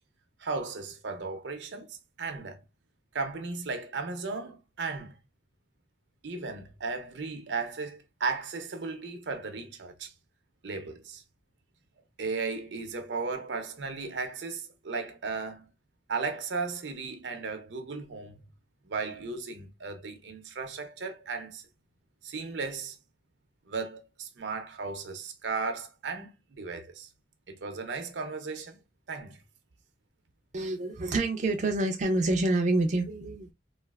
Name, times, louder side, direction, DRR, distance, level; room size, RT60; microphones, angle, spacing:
voice 1, 0.4-2.6 3.1-5.1 6.2-10.1 10.6-11.2 12.2-15.7 16.1-18.4 18.9-21.6 22.2-23.0 23.7-27.1 27.5-28.8 29.1-29.4, right 4 dB, 85° right, 0.6 m, -35 dB
voice 2, 30.5-33.5, right 2 dB, 45° right, 0.4 m, -27 dB
3.2 x 2.4 x 2.2 m
head